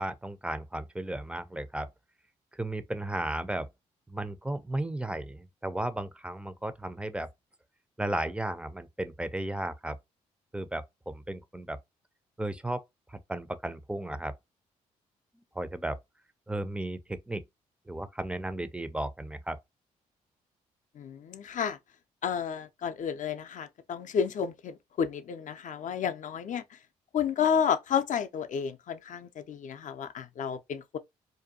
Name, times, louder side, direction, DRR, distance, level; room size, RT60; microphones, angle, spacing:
voice 1, 0.0-1.9 2.5-3.7 4.1-7.3 8.0-10.0 10.5-11.8 12.4-12.8 13.1-14.3 15.6-16.0 16.5-17.4 17.9-19.6, right 1 dB, 5° right, 0.4 m, -34 dB
voice 2, 21.0-21.8 22.2-26.6 27.1-31.0, left 7 dB, 50° left, 0.5 m, -31 dB
2.6 x 2.2 x 2.6 m
hypercardioid pair, 50°, 16 cm